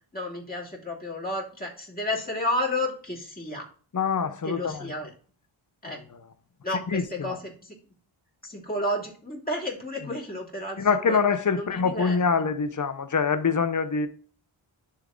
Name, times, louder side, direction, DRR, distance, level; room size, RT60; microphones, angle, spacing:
voice 1, 0.1-3.7 4.4-5.1 5.8-6.0 6.6-7.7 8.4-11.2 11.5-12.4, left 1 dB, 20° left, 2.8 m, -32 dB
voice 2, 3.9-4.9 5.9-6.0 6.9-7.4 10.8-14.1, left 5 dB, 40° left, 0.8 m, -25 dB
10.5 x 3.7 x 3.8 m
wide cardioid pair, 80°, 50 cm